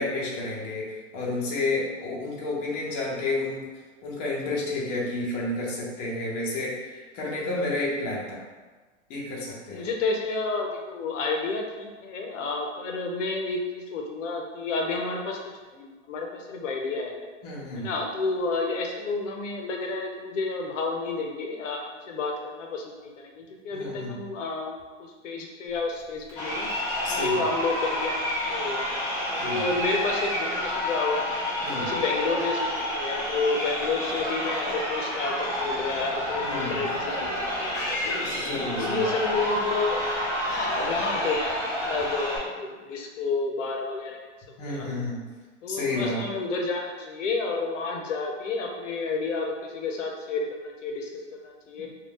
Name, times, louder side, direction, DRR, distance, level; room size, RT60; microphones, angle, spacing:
voice 1, 0.0-3.6 4.0-8.4 9.1-9.9 17.4-17.9 23.7-24.2 27.0-27.5 29.4-29.6 31.6-31.9 36.4-36.9 38.2-39.1 44.6-45.2 45.7-46.2, left 2 dB, 35° left, -4 dB, 0.7 m, -31 dB
voice 2, 9.7-15.4 15.7-17.1 17.7-26.7 27.1-28.9 29.4-31.3 31.7-35.3 35.6-38.2 38.7-40.1 40.4-44.2 44.7-44.9 45.6-51.1 51.4-51.9, left 3 dB, 75° left, 1 dB, 0.7 m, -30 dB
Crowd, 26.3-42.4, left 1 dB, 10° left, 0.4 m, -29 dB
2.6 x 2.3 x 3.5 m, 1.3 s
hypercardioid pair, 145°, 37 cm